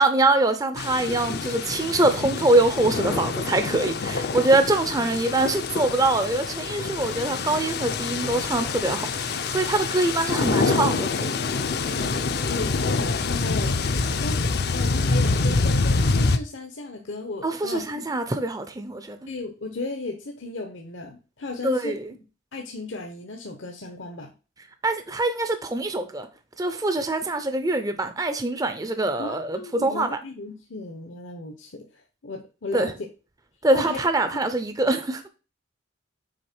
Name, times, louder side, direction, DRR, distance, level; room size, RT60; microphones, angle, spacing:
voice 1, 0.0-11.4 17.4-19.2 21.6-22.1 24.8-26.3 26.6-30.1 32.7-32.9 33.6-35.3, right 2 dB, 20° right, 0.5 m, -24 dB
sound 1, 0.8-16.4, left 3 dB, 50° left, 0.5 m, -26 dB
voice 2, 12.5-13.8 14.2-18.1 19.3-22.0 22.5-24.3 29.2-31.9 32.2-32.9 33.7-34.0, left 2 dB, 70° left, 0.9 m, -35 dB
6.3 x 4.1 x 4.4 m
head